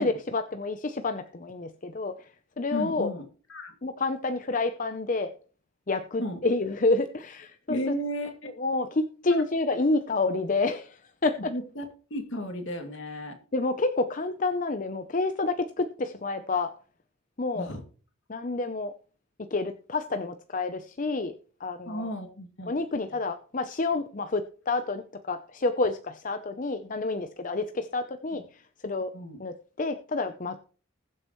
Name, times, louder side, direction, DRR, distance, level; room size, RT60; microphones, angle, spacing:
voice 1, 0.0-2.3 2.6-3.1 3.8-5.3 5.9-7.8 8.6-11.5 13.5-16.7 17.4-17.7 18.3-18.9 19.5-22.1 22.7-29.1 29.4-30.6, left 3 dB, 40° left, 9 dB, 0.6 m, -29 dB
voice 2, 2.7-3.2 3.5-3.7 6.2-6.4 7.7-8.3 11.5-13.4 17.5-17.8 21.9-22.8 28.3-28.4 29.1-29.4, equal, 65° left, 5 dB, 2.4 m, -34 dB
20.5 x 7.7 x 3.1 m, 0.40 s
head